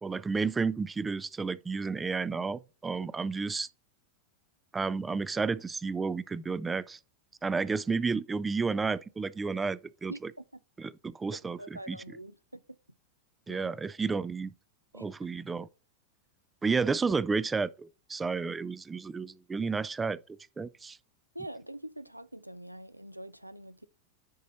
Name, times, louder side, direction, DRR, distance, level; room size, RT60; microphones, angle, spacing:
voice 1, 0.0-3.7 4.7-7.0 7.4-10.3 10.8-11.6 11.9-12.0 13.5-14.5 14.9-15.7 16.6-20.2 20.6-21.0, right 4 dB, 15° right, 0.3 m, -31 dB
voice 2, 10.1-10.4 11.3-12.6 13.5-13.7 14.9-15.1 21.3-23.9, right 1 dB, 85° right, 0.3 m, -44 dB
10.0 x 4.2 x 4.0 m
figure-of-eight pair, 90°, 0 cm